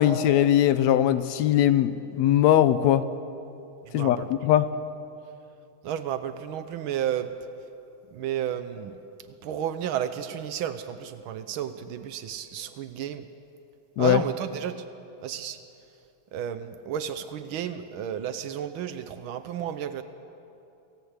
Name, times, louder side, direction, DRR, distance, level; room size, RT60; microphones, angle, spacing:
voice 1, 0.0-3.0 3.9-4.7 14.0-14.2, left 11 dB, 75° left, 12 dB, 1.9 m, -20 dB
voice 2, 3.9-4.3 5.8-7.3 8.1-9.0 9.4-13.3 14.0-14.8 15.2-15.6 16.3-20.0, right 10 dB, 90° right, 11 dB, 1.1 m, -32 dB
24.5 x 17.5 x 8.1 m, 2.7 s
omnidirectional pair, 3.3 m